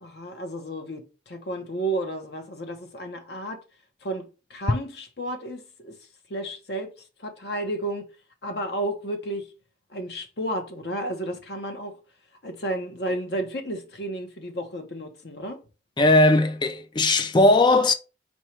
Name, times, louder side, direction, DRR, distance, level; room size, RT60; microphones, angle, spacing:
voice 1, 0.0-3.6 4.0-5.9 6.3-6.9 7.2-8.1 8.4-9.5 9.9-11.9 12.4-15.6, right 1 dB, 60° left, 0.9 m, -32 dB
voice 2, 16.0-17.9, left 2 dB, 25° left, 0.3 m, -18 dB
4.4 x 2.3 x 4.4 m
head